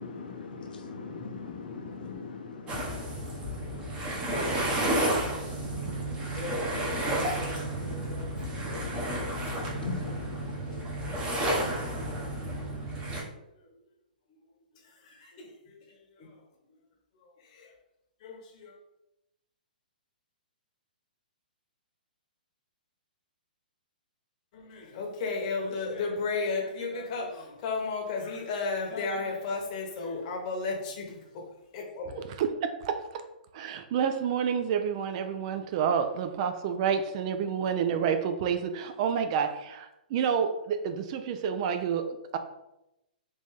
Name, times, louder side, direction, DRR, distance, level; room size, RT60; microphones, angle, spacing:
voice 1, 0.0-12.7, left 4 dB, 75° left, 1 dB, 0.8 m, -42 dB
sound 1, 2.7-13.2, right 1 dB, 20° right, 0.9 m, -31 dB
voice 2, 6.2-8.4 10.6-11.5 12.2-12.4 13.5-13.8 14.3-14.4 14.7-16.8 17.1-17.8 18.2-18.8 24.5-32.3, left 4 dB, 45° left, 1 dB, 1.0 m, -35 dB
voice 3, 32.4-33.2 33.5-42.4, right 7 dB, 45° right, 8 dB, 0.4 m, -29 dB
3.3 x 2.6 x 3.5 m, 0.91 s
hypercardioid pair, 130°, 5 cm